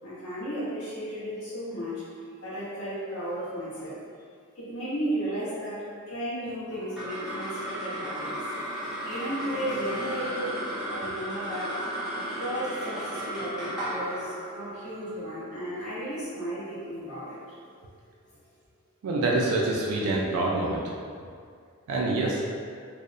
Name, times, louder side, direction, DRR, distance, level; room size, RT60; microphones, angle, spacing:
voice 1, 0.0-2.0 2.4-4.0 4.5-11.8 12.1-17.4, right 1 dB, 75° left, -11 dB, 1.1 m, -34 dB
sound 1, 6.7-17.3, right 1 dB, 5° right, 0.5 m, -35 dB
voice 2, 19.0-20.8 21.9-22.5, right 2 dB, 85° right, -3 dB, 0.4 m, -26 dB
2.6 x 2.0 x 2.5 m, 2.2 s
head